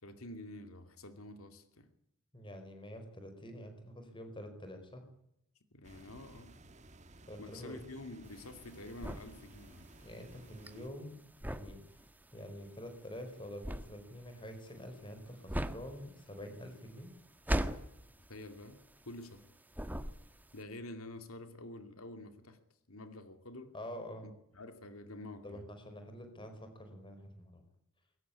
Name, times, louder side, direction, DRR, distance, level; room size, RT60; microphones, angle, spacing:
voice 1, 0.0-1.9 5.7-6.6 7.4-9.9 18.3-18.8 19.1-19.4 20.5-22.6 22.9-23.8 24.2-25.7, left 1 dB, 85° left, 2.5 m, -48 dB
voice 2, 2.3-5.0 7.3-7.8 10.0-11.2 11.5-12.0 12.3-17.1 23.7-24.3 25.4-27.6, equal, 25° left, 4.9 m, -47 dB
sound 1, 5.8-10.9, right 2 dB, 35° right, 1.6 m, -57 dB
sound 2, 8.3-19.4 19.7-20.6, equal, 10° right, 1.4 m, -39 dB
22.0 x 18.5 x 9.8 m
head